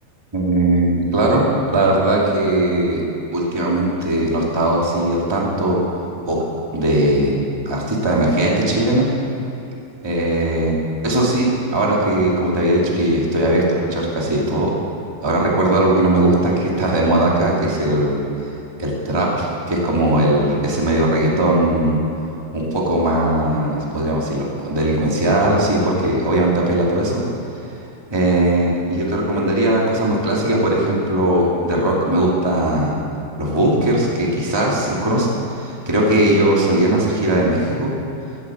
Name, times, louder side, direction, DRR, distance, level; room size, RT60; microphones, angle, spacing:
voice 1, 0.3-1.4 1.7-3.0 3.3-5.8 6.3-6.4 6.7-7.4 7.6-9.1 10.0-10.7 11.0-14.7 15.2-18.2 18.8-22.0 22.5-27.2 28.1-32.9 33.3-37.9, right 1 dB, 10° right, -3 dB, 1.1 m, -19 dB
15.5 x 9.5 x 7.7 m, 2.7 s
omnidirectional pair, 4.5 m